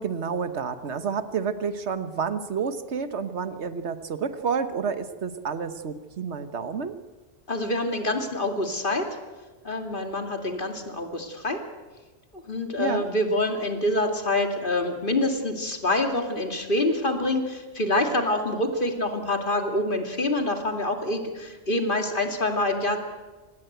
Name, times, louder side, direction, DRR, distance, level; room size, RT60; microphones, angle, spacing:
voice 1, 0.0-7.0 12.8-13.0, right 6 dB, 65° right, 11 dB, 1.5 m, -29 dB
voice 2, 7.5-9.1 9.6-11.6 12.3-23.0, left 1 dB, 45° left, 5 dB, 2.6 m, -26 dB
26.0 x 19.5 x 8.1 m, 1.3 s
omnidirectional pair, 1.2 m